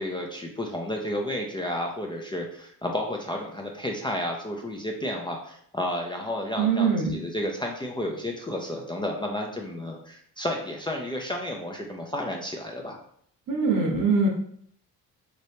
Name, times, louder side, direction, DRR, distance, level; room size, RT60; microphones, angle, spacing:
voice 1, 0.0-13.0, left 1 dB, 10° left, 0 dB, 0.5 m, -32 dB
voice 2, 6.6-7.1 13.5-14.3, right 4 dB, 55° right, 0 dB, 1.2 m, -22 dB
3.2 x 3.1 x 2.7 m, 0.64 s
supercardioid pair, 75°, 38 cm